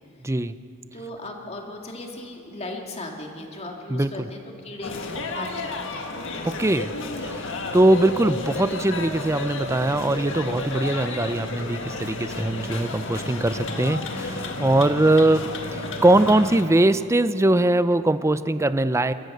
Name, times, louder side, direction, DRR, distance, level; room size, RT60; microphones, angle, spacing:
voice 1, 0.9-6.2 7.6-7.8, left 2 dB, 30° left, 1 dB, 2.2 m, -37 dB
voice 2, 3.9-4.3 6.4-6.9 7.2-19.1, right 1 dB, 15° right, 13 dB, 0.4 m, -21 dB
sound 1, 4.8-16.6, left 2 dB, 60° left, 1.7 m, -32 dB
28.0 x 14.5 x 6.7 m, 2.8 s
head